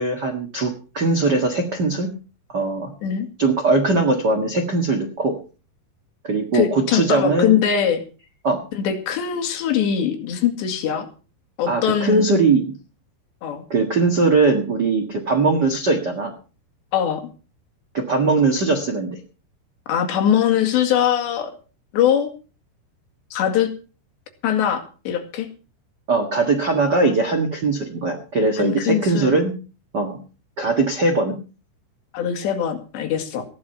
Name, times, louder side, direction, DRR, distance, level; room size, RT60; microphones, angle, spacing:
voice 1, 0.0-2.1 2.5-2.9 3.4-5.3 6.2-7.6 8.4-8.6 11.7-12.7 13.7-16.3 17.9-19.2 26.1-29.5 29.9-30.2 30.6-31.4, right 3 dB, 85° right, 5 dB, 0.9 m, -20 dB
voice 2, 6.5-8.0 8.7-11.1 11.6-12.3 13.4-13.6 16.9-17.3 19.9-21.5 21.9-22.3 23.3-23.7 24.4-25.5 28.6-29.4 32.1-33.5, left 9 dB, 75° left, 5 dB, 4.2 m, -21 dB
16.0 x 11.0 x 5.8 m, 0.36 s
omnidirectional pair, 5.1 m